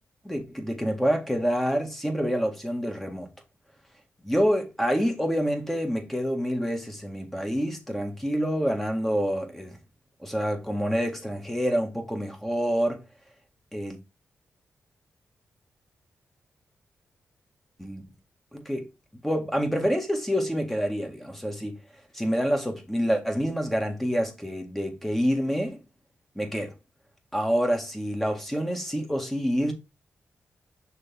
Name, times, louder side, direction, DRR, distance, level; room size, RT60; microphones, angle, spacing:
voice 1, 0.2-3.3 4.2-9.8 10.2-13.0 13.7-14.0 17.8-18.0 18.5-18.9 19.2-21.8 22.1-25.8 26.4-26.7 27.3-29.7, equal, 5° left, 1.9 m, -27 dB
6.3 x 3.4 x 4.4 m
cardioid pair, 80°, 5 cm